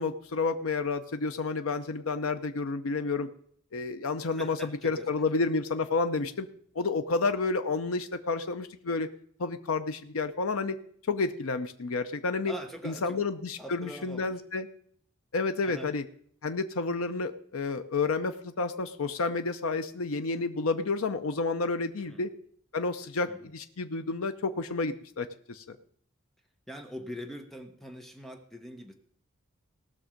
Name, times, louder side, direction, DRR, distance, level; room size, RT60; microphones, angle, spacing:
voice 1, 0.0-3.3 3.7-6.5 6.7-9.1 9.4-10.8 11.1-12.5 12.8-13.4 13.7-14.7 15.3-16.0 16.4-22.3 22.7-25.8, left 3 dB, 75° left, 8 dB, 0.6 m, -30 dB
voice 2, 4.3-5.1 12.5-13.2 13.6-14.4 15.6-15.9 22.0-22.2 23.3-23.5 26.7-28.9, equal, ahead, 4 dB, 1.0 m, -43 dB
18.5 x 6.2 x 5.1 m, 0.63 s
head